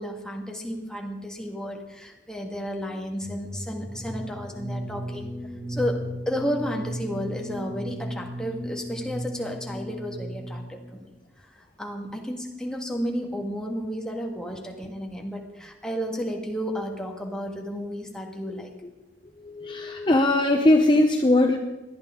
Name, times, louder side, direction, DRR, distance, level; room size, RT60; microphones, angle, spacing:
voice 1, 0.0-5.3 5.7-6.0 6.2-11.1 11.4-18.7, equal, 5° left, 0 dB, 1.7 m, -32 dB
sound 1, 3.2-10.9, equal, 25° right, 1.8 m, -35 dB
voice 2, 19.4-21.6, left 1 dB, 25° left, 4 dB, 0.8 m, -20 dB
18.5 x 12.0 x 3.7 m, 1.1 s
head